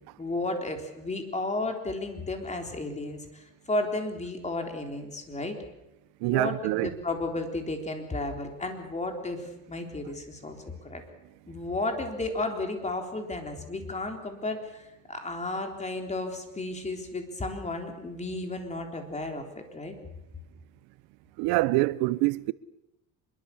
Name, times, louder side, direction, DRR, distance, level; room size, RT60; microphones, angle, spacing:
voice 1, 0.2-5.6 6.3-11.0 11.5-19.9, left 2 dB, 20° left, 3.9 m, -33 dB
voice 2, 6.2-6.9 21.4-22.5, right 20 dB, 85° right, 0.8 m, -25 dB
25.0 x 22.5 x 7.2 m
cardioid pair, 125°, 37 cm